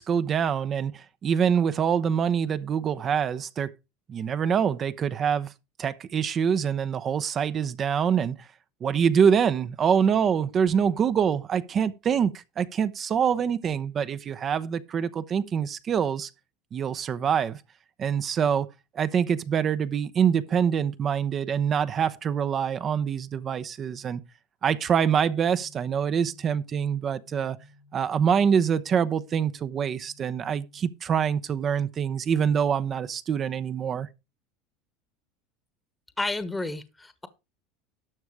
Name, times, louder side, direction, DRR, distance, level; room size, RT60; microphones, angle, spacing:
voice 1, 0.0-3.7 4.1-5.5 5.8-8.5 8.8-16.3 16.7-17.6 18.0-18.7 18.9-24.2 24.6-27.6 27.9-34.1, right 7 dB, 35° right, 0.8 m, -25 dB
sound 1, 25.3-30.8, left 4 dB, 90° left, 1.8 m, -55 dB
voice 2, 36.2-37.3, left 2 dB, 10° left, 1.2 m, -31 dB
12.0 x 6.3 x 4.8 m
hypercardioid pair, 95°, 0 cm